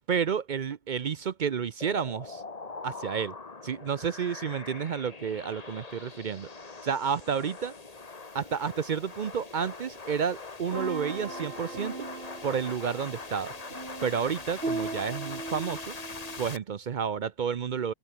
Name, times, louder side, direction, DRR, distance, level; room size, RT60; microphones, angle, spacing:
voice 1, 0.1-2.4 2.8-3.3 3.6-6.5 6.8-7.7 8.3-12.1 12.4-13.5 14.0-15.9 16.4-17.9, right 7 dB, 70° right, 0.4 m, -30 dB
sound 1, 1.8-16.6, left 3 dB, 25° left, 1.4 m, -42 dB
sound 2, 10.7-16.5, right 2 dB, 35° right, 3.4 m, -38 dB
open air
omnidirectional pair, 1.7 m